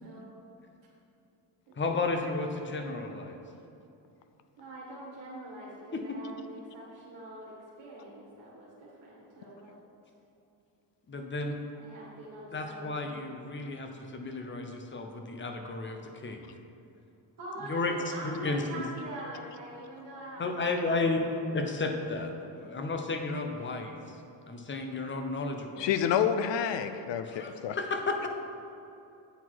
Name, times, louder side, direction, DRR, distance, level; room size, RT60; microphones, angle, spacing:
voice 1, 0.0-0.5 1.7-2.0 4.6-9.8 11.7-13.6 17.4-21.4 23.0-23.1, right 1 dB, 75° right, -5 dB, 1.6 m, -44 dB
voice 2, 1.8-3.4 5.9-6.2 11.1-11.6 12.5-16.5 17.7-17.9 18.2-18.8 20.4-24.2 24.5-25.9 27.2-28.3, left 3 dB, 25° left, 3 dB, 0.7 m, -33 dB
voice 3, 25.8-27.8, left 8 dB, 75° left, 9 dB, 0.5 m, -28 dB
8.0 x 4.0 x 4.6 m, 2.8 s
cardioid pair, 115°, 45 cm